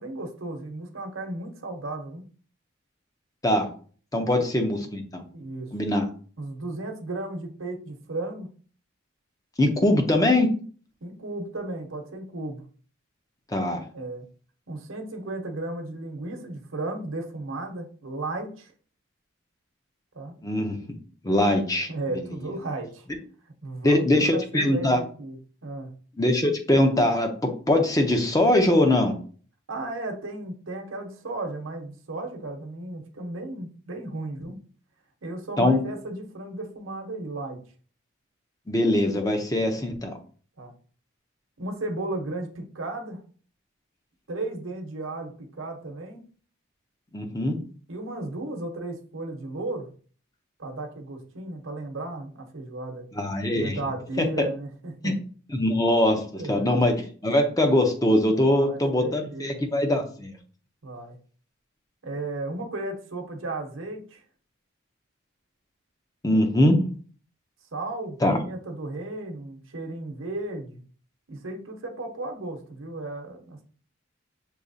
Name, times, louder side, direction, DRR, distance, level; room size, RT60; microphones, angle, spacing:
voice 1, 0.0-2.2 4.3-4.4 5.3-5.8 6.4-8.5 11.0-12.6 13.9-14.2 14.7-18.7 20.1-20.4 21.9-23.1 23.6-25.4 25.6-25.9 29.7-34.6 35.2-37.6 39.8-40.0 40.6-40.7 41.6-43.2 44.3-46.2 47.9-49.9 50.6-53.1 53.5-55.2 56.3-56.9 58.4-59.9 60.8-61.2 62.0-64.2 66.3-66.5 67.7-70.8 71.3-73.6, right 2 dB, 75° right, 3 dB, 0.9 m, -35 dB
voice 2, 4.1-5.3 5.7-6.1 9.6-10.5 13.5-13.8 20.4-20.8 21.2-21.9 23.8-25.0 26.2-29.2 35.6-35.8 38.7-40.2 47.1-47.6 53.2-53.8 54.2-54.3 55.0-55.1 55.5-56.9 57.2-60.4 66.2-66.8 68.2-68.4, left 1 dB, 15° left, 4 dB, 0.6 m, -22 dB
6.3 x 2.9 x 2.7 m, 0.43 s
head